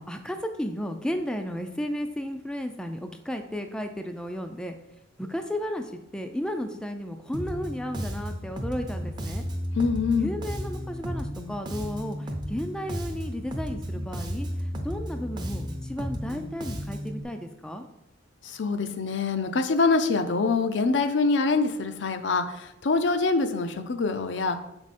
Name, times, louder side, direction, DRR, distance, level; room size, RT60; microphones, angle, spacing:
voice 1, 0.0-4.7 5.2-9.4 10.2-14.5 14.8-17.8, equal, 5° left, 5 dB, 0.4 m, -33 dB
Bass guitar, 7.3-17.2, equal, 20° right, 0.7 m, -34 dB
voice 2, 9.8-10.4 18.4-24.6, left 4 dB, 65° left, 9 dB, 0.5 m, -25 dB
6.9 x 4.9 x 4.2 m, 0.89 s
head